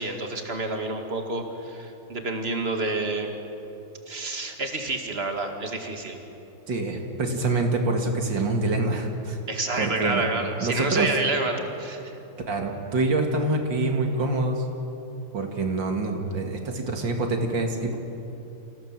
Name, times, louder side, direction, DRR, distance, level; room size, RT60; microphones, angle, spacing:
voice 1, 0.0-3.3 4.1-6.2 9.5-12.2, right 3 dB, 30° right, 4 dB, 2.1 m, -29 dB
voice 2, 6.7-9.4 9.8-10.2 10.6-11.1 12.5-14.6 15.3-18.0, right 2 dB, 65° right, 3 dB, 2.8 m, -26 dB
27.5 x 16.5 x 7.5 m, 2.9 s
omnidirectional pair, 2.3 m